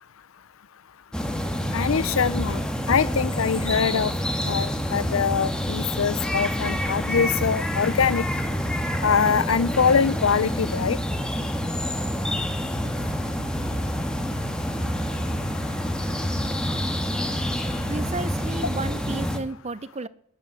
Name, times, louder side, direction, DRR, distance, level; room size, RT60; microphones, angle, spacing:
sound 1, 1.1-19.4, equal, 5° left, 1.6 m, -27 dB
voice 1, 1.7-2.6 2.9-4.1 4.5-8.2 9.0-11.0, left 6 dB, 85° left, 17 dB, 0.6 m, -23 dB
voice 2, 17.9-20.1, right 3 dB, 30° right, 17 dB, 0.7 m, -32 dB
16.0 x 10.5 x 7.6 m, 0.65 s
head